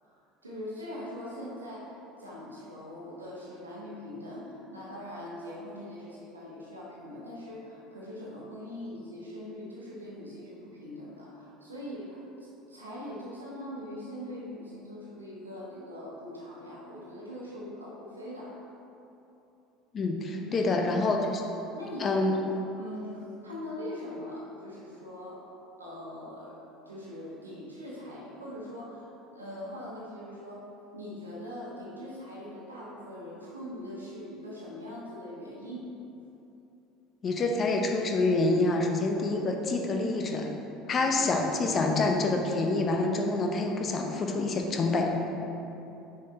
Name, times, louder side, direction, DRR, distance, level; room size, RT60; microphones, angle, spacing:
voice 1, 0.0-12.2 12.7-18.7 20.5-20.7 21.1-21.2 21.7-22.5 22.8-26.6 26.9-30.7 30.9-35.8 41.0-41.1, left 1 dB, 85° right, -6 dB, 1.2 m, -42 dB
voice 2, 19.9-21.4 22.0-22.3 37.2-40.5 40.9-45.3, left 2 dB, 35° left, 2 dB, 0.7 m, -27 dB
6.2 x 4.0 x 4.2 m, 3.0 s
figure-of-eight pair, 65°, 0 cm